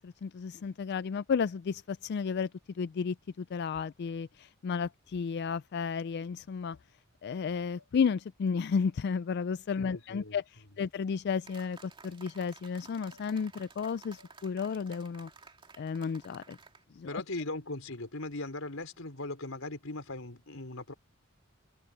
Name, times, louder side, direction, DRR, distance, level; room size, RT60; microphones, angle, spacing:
voice 1, 0.0-2.5 2.8-6.8 7.2-10.4 10.8-15.3 15.8-16.6 17.0-17.2, left 6 dB, 55° left, 0.3 m, -33 dB
sound 1, 6.7-6.8 7.7-7.9 8.8-9.0 9.9-10.0 11.0-11.1 12.0-12.2 13.1-13.3 14.2-14.3, left 2 dB, 60° right, 3.6 m, -61 dB
voice 2, 9.8-10.8 17.1-20.9, left 2 dB, 90° left, 4.3 m, -39 dB
sound 2, 11.4-16.8, right 4 dB, 25° right, 2.6 m, -54 dB
open air
head